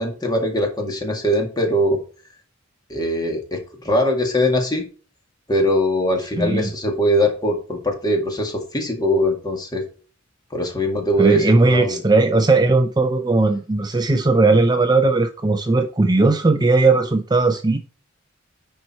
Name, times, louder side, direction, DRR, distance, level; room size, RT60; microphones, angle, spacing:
voice 1, 0.0-2.0 2.9-4.8 5.5-9.8 10.5-12.0, equal, 20° left, 2.0 m, -21 dB
voice 2, 6.4-6.7 11.2-17.8, right 3 dB, 20° right, 0.5 m, -17 dB
10.0 x 4.5 x 4.3 m
head